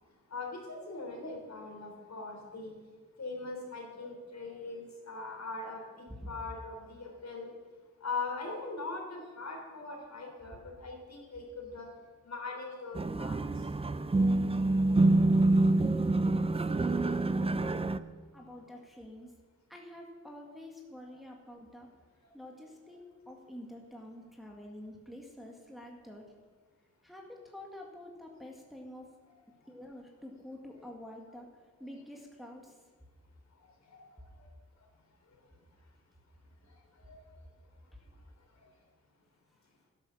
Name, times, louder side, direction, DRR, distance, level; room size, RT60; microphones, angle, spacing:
voice 1, 0.3-2.7 3.2-7.5 8.0-11.9 12.3-13.4 33.9-34.0 37.1-37.2, left 3 dB, 60° left, 1 dB, 3.7 m, -41 dB
sound 1, 13.0-18.0, right 2 dB, 20° right, 0.5 m, -26 dB
voice 2, 15.8-17.8 18.3-19.3 19.7-21.9 22.3-26.3 27.0-29.1 29.7-31.5 31.8-32.8 37.9-38.0, left 1 dB, ahead, -1 dB, 2.0 m, -48 dB
13.0 x 10.5 x 7.0 m, 1.4 s
wide cardioid pair, 120°, 31 cm